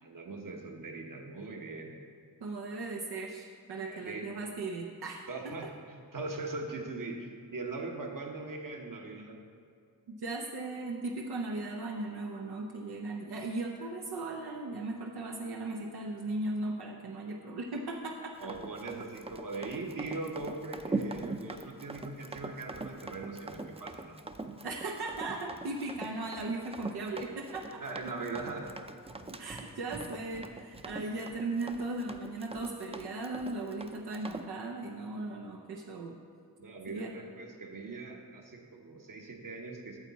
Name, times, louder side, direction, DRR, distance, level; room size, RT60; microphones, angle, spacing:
voice 1, 0.0-1.9 3.9-4.3 5.3-9.4 18.4-24.1 27.8-28.8 36.6-40.0, right 3 dB, 60° right, 2 dB, 1.2 m, -40 dB
voice 2, 2.4-5.3 10.1-18.3 24.6-27.8 29.4-36.1 36.9-37.1, right 2 dB, 85° right, 0 dB, 0.7 m, -37 dB
Run, 18.4-34.5, right 3 dB, 15° right, 0.5 m, -42 dB
8.9 x 7.2 x 4.1 m, 2.3 s
cardioid pair, 50°, 38 cm